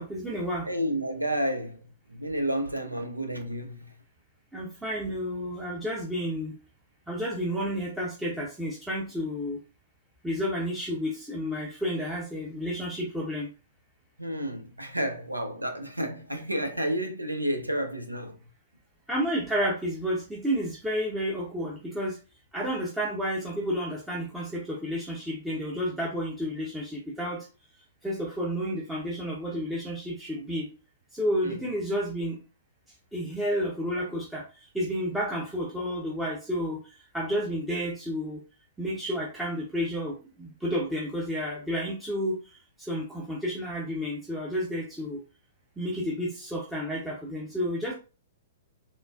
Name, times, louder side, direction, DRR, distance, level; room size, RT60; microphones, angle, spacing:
voice 1, 0.0-0.7 4.5-6.5 7.1-9.6 10.2-13.5 19.1-22.2 22.5-27.5 28.0-30.7 31.1-32.4 33.1-36.8 37.1-38.4 38.8-45.2 45.8-47.9, equal, 5° right, 0.7 m, -31 dB
voice 2, 0.7-1.8 2.1-3.9 14.2-18.4 31.4-31.5, right 1 dB, 90° right, 0.5 m, -30 dB
3.7 x 2.0 x 2.3 m
figure-of-eight pair, 110°, 0 cm